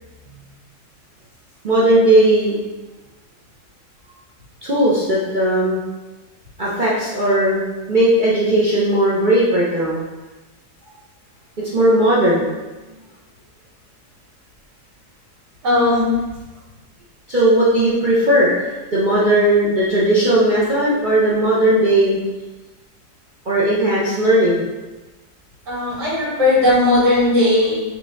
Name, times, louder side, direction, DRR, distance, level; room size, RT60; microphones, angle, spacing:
voice 1, 1.6-2.6 4.6-5.8 6.6-7.6 7.9-10.0 11.7-12.5 17.3-18.5 18.9-22.2 23.5-24.6, right 1 dB, 55° right, -7 dB, 0.5 m, -16 dB
voice 2, 15.6-16.1 25.7-27.8, left 2 dB, 80° right, -6 dB, 2.2 m, -16 dB
4.9 x 2.7 x 3.5 m, 1.2 s
omnidirectional pair, 1.8 m